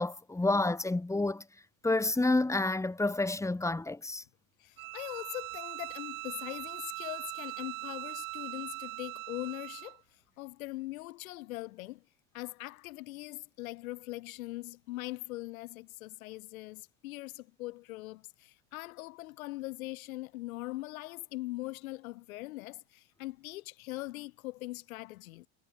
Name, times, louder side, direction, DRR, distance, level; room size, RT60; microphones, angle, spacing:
voice 1, 0.0-1.4 1.8-4.2, left 2 dB, 5° left, 5.9 m, -29 dB
voice 2, 4.6-10.0 10.4-12.0 12.3-25.5, left 19 dB, 80° left, 4.7 m, -41 dB
Bowed string instrument, 4.8-10.0, right 23 dB, 75° right, 7.5 m, -41 dB
supercardioid pair, 130°, 41 cm